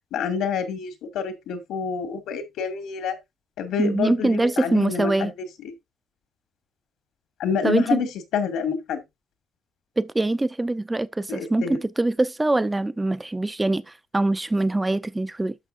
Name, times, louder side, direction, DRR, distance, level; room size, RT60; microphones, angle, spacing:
voice 1, 0.1-3.2 3.6-5.3 5.6-5.7 7.4-8.1 8.3-9.0 11.3-11.8, left 7 dB, 85° left, 2.0 m, -27 dB
voice 2, 3.8-5.3 7.6-8.1 10.0-15.5, right 2 dB, 15° right, 0.6 m, -23 dB
11.5 x 6.4 x 2.5 m
cardioid pair, 90°, 0 cm